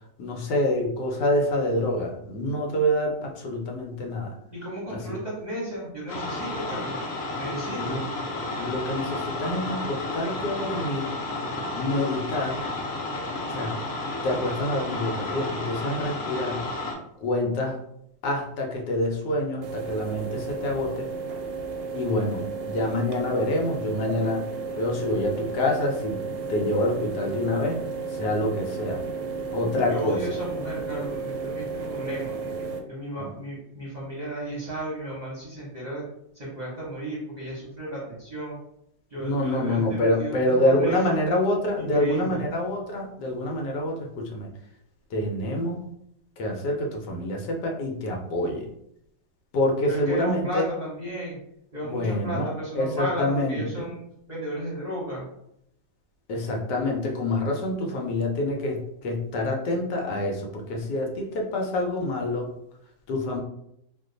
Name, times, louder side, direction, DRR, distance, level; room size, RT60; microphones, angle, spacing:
voice 1, 0.2-4.3 4.9-5.2 7.8-8.0 8.6-11.2 11.7-12.6 13.5-13.8 14.2-16.6 17.2-17.8 18.2-21.1 21.9-24.5 24.7-26.2 26.5-27.8 28.1-29.0 29.5-30.2 33.2-33.3 39.2-44.5 45.1-45.8 46.4-48.7 49.5-50.7 51.8-53.9 56.3-62.5 63.1-63.4, left 1 dB, 75° left, 1 dB, 1.2 m, -27 dB
voice 2, 4.5-7.0 7.4-8.0 29.9-32.3 32.9-36.0 36.3-38.6 39.1-41.1 41.8-42.4 49.9-51.4 51.7-54.0 54.3-55.2, right 1 dB, 35° right, -7 dB, 0.7 m, -34 dB
sound 1, 6.1-16.9, left 2 dB, 60° left, 1.1 m, -32 dB
sound 2, 19.6-32.8, right 4 dB, 90° right, 1.2 m, -33 dB
2.9 x 2.2 x 3.7 m, 0.77 s
omnidirectional pair, 1.9 m